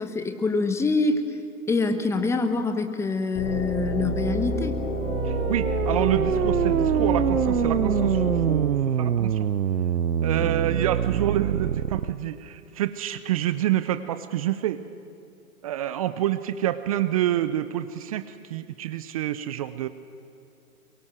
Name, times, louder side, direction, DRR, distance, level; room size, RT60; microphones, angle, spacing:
voice 1, 0.0-1.4 1.7-4.7 10.4-10.5, left 3 dB, 5° left, 8 dB, 1.1 m, -25 dB
sound 1, 3.3-8.5, right 1 dB, 30° left, 5.9 m, -27 dB
sound 2, 5.0-12.1, right 9 dB, 80° right, 0.8 m, -25 dB
voice 2, 5.2-9.5 10.2-14.8 15.6-19.9, right 12 dB, 25° right, 13 dB, 0.6 m, -27 dB
23.0 x 22.5 x 7.7 m, 2.7 s
figure-of-eight pair, 130°, 44 cm